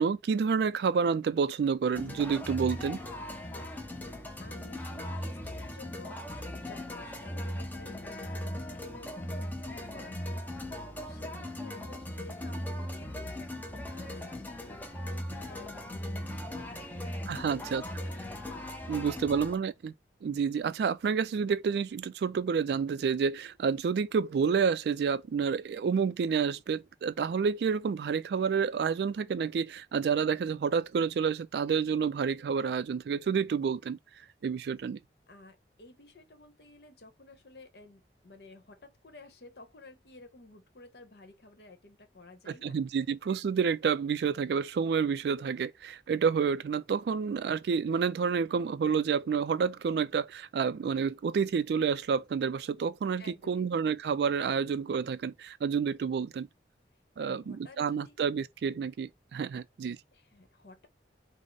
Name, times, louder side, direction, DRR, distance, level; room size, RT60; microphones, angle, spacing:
voice 1, 0.0-3.0 17.3-17.8 18.9-19.9 20.2-34.0 34.4-35.0 42.5-56.5 57.2-60.0, right 6 dB, 65° right, 0.3 m, -29 dB
sound 1, 1.9-19.6, left 1 dB, 10° left, 0.6 m, -39 dB
voice 2, 4.4-8.5 8.8-18.1 18.9-19.5 35.3-43.0 53.2-54.0 57.2-58.2 60.1-60.9, left 2 dB, 65° left, 1.0 m, -53 dB
4.8 x 2.1 x 3.9 m
head